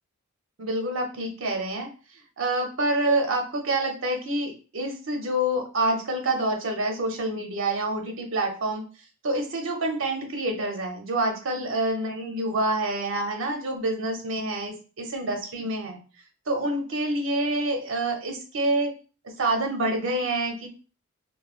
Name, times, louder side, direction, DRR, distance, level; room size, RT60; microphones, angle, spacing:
voice 1, 0.6-1.9 2.4-8.8 9.2-16.0 16.5-18.9 19.2-20.7, right 1 dB, 65° right, 3 dB, 0.7 m, -27 dB
3.1 x 2.1 x 2.4 m, 0.36 s
head